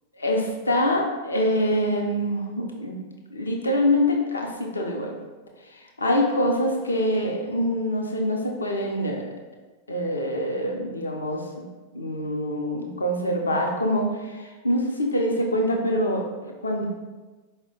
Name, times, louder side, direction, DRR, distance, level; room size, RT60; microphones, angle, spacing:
voice 1, 0.2-3.0 3.3-5.1 5.6-9.2 9.9-11.6 11.9-16.8, equal, 75° left, 1 dB, 0.6 m, -25 dB
4.8 x 2.1 x 3.7 m, 1.2 s
figure-of-eight pair, 90°, 0 cm